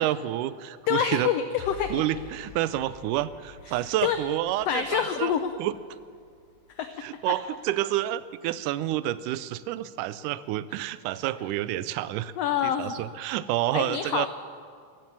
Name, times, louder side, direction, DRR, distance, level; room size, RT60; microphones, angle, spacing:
voice 1, 0.0-1.3 1.9-5.3 5.6-5.7 7.0-12.3 12.6-14.3, right 14 dB, 85° right, 16 dB, 2.1 m, -29 dB
voice 2, 0.9-2.0 3.7-4.2 4.7-5.5 6.7-6.9 7.3-7.4 12.4-13.0 13.7-14.3, left 9 dB, 85° left, 9 dB, 1.4 m, -27 dB
sound 1, 1.6-8.0, left 5 dB, 70° left, 1.6 m, -48 dB
14.5 x 12.5 x 7.3 m, 2.2 s
omnidirectional pair, 3.6 m